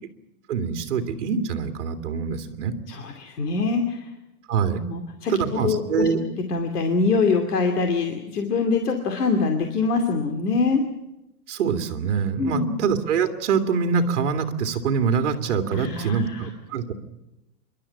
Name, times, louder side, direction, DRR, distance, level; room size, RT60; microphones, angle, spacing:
voice 1, 0.5-2.7 4.5-4.8 5.3-6.2 11.5-16.9, right 6 dB, 50° right, 6 dB, 2.4 m, -24 dB
voice 2, 2.9-4.1 4.8-6.1 6.5-10.8 12.4-12.8 15.7-16.5, left 4 dB, 75° left, 4 dB, 2.8 m, -24 dB
27.0 x 12.0 x 9.9 m, 0.93 s
hypercardioid pair, 175°, 47 cm